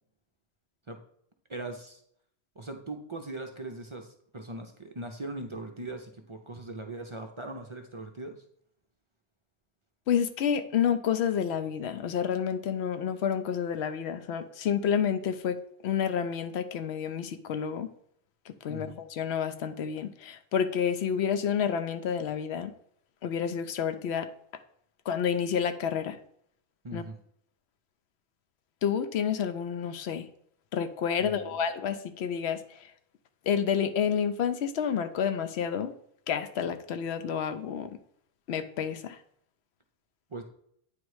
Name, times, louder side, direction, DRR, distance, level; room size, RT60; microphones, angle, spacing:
voice 1, 1.5-2.0 2.6-8.4 18.7-19.0 26.8-27.2 31.2-31.6 40.3-40.4, right 2 dB, 35° right, 4 dB, 0.5 m, -40 dB
voice 2, 10.1-17.9 18.5-22.7 23.2-24.3 25.1-26.2 26.9-27.0 28.8-30.3 30.7-32.9 33.5-35.9 36.3-38.0 38.5-39.2, left 8 dB, 85° left, 10 dB, 0.9 m, -29 dB
8.8 x 3.1 x 4.7 m, 0.68 s
omnidirectional pair, 1.1 m